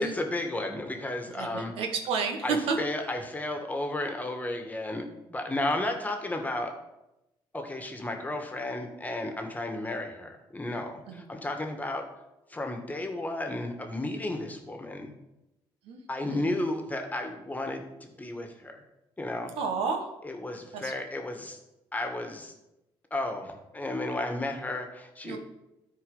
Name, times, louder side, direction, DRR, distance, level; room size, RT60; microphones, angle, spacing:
voice 1, 0.0-1.7 2.4-5.0 5.3-6.7 7.5-12.1 12.5-15.1 16.1-18.8 19.2-19.5 20.2-21.6 21.9-22.5 23.1-25.4, left 2 dB, 15° left, 4 dB, 1.6 m, -33 dB
voice 2, 1.4-2.8 11.1-11.2 15.8-16.0 16.3-16.7 19.6-20.1 20.7-20.9 25.2-25.4, right 5 dB, 85° right, 3 dB, 1.5 m, -31 dB
12.5 x 4.7 x 5.5 m, 0.93 s
cardioid pair, 95°, 10 cm